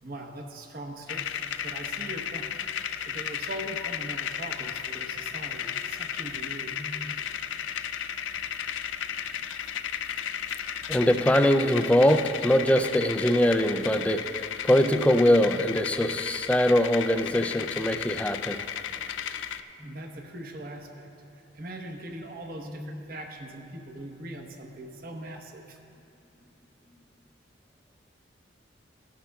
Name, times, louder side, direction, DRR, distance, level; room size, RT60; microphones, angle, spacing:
voice 1, 0.0-2.5 3.0-6.8 19.8-21.1 21.3-25.8, right 1 dB, 50° right, 2 dB, 1.0 m, -41 dB
sound 1, 1.1-19.6, left 9 dB, 75° left, 0.4 m, -34 dB
voice 2, 10.9-14.3 14.6-18.6, equal, 5° left, 8 dB, 0.3 m, -22 dB
16.5 x 11.5 x 2.3 m, 2.7 s
head